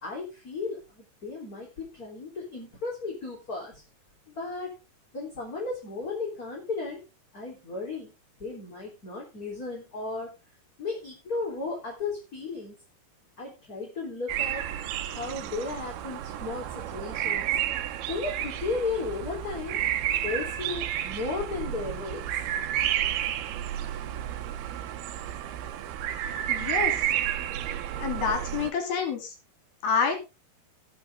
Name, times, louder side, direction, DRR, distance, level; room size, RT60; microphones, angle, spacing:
voice 1, 0.0-3.8 4.4-4.7 5.1-7.0 7.3-8.1 8.4-10.3 10.8-12.7 13.4-14.7 15.1-17.5 18.0-19.8 20.2-22.2, left 3 dB, 25° left, -2 dB, 3.6 m, -34 dB
sound 1, 14.3-28.7, right 11 dB, 80° right, 2.8 m, -31 dB
voice 2, 26.5-27.0 28.0-29.3 29.8-30.3, left 5 dB, 70° left, 4 dB, 4.6 m, -28 dB
19.5 x 6.8 x 3.7 m, 0.28 s
omnidirectional pair, 4.5 m